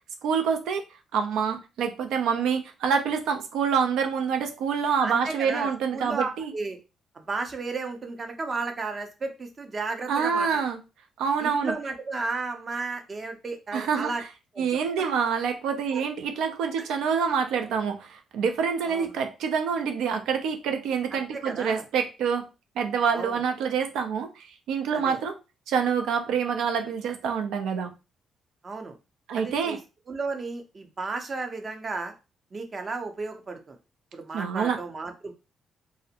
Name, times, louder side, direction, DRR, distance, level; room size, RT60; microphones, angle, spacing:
voice 1, 0.2-0.8 1.1-6.5 10.1-10.8 11.2-11.7 13.7-14.1 14.6-22.5 22.8-25.3 25.7-27.9 29.3-29.8 34.3-34.8, right 6 dB, 85° right, 0.4 m, -26 dB
voice 2, 5.0-6.8 7.1-10.6 11.4-14.2 14.6-14.8 15.9-16.0 16.8-16.9 18.9-19.1 21.1-21.8 23.1-23.4 24.9-25.2 28.6-29.0 29.3-29.8 30.1-32.1 32.5-33.8 34.1-35.3, right 3 dB, 35° right, 0.6 m, -33 dB
2.5 x 2.0 x 2.7 m
cardioid pair, 90°, 0 cm